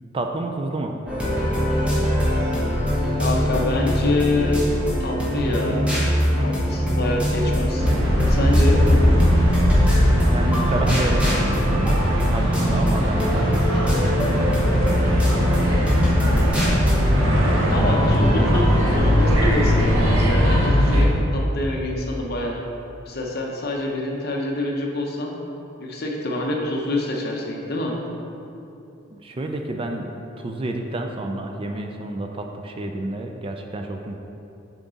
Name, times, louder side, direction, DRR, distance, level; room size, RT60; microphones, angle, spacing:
voice 1, 0.1-0.9 10.1-15.6 29.1-30.0 30.4-34.2, right 2 dB, 25° right, 4 dB, 0.4 m, -30 dB
sound 1, 1.1-20.4, equal, 5° right, 1.2 m, -23 dB
voice 2, 3.2-4.6 5.0-5.8 6.4-7.9 8.3-8.8 17.7-21.1 21.3-22.6 23.1-25.3 25.8-28.0, left 1 dB, 50° left, -1 dB, 0.9 m, -26 dB
sound 2, 7.8-21.0, equal, 70° right, 1.0 m, -20 dB
7.3 x 4.7 x 4.0 m, 2.8 s
head